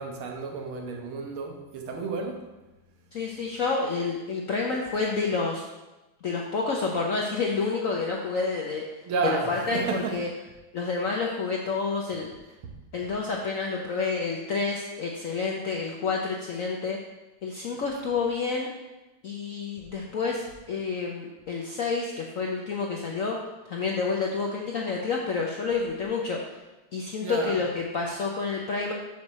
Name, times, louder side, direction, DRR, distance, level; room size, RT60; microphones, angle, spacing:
voice 1, 0.0-2.4 9.0-10.1 27.2-27.6, right 4 dB, 85° right, 2 dB, 1.9 m, -31 dB
voice 2, 3.1-5.7 6.2-8.8 9.2-10.3 10.7-12.3 12.9-17.0 17.4-18.7 19.2-23.4 23.7-26.4 26.9-28.9, left 4 dB, 70° left, -1 dB, 0.8 m, -29 dB
6.5 x 6.3 x 4.1 m, 1.1 s
omnidirectional pair, 2.2 m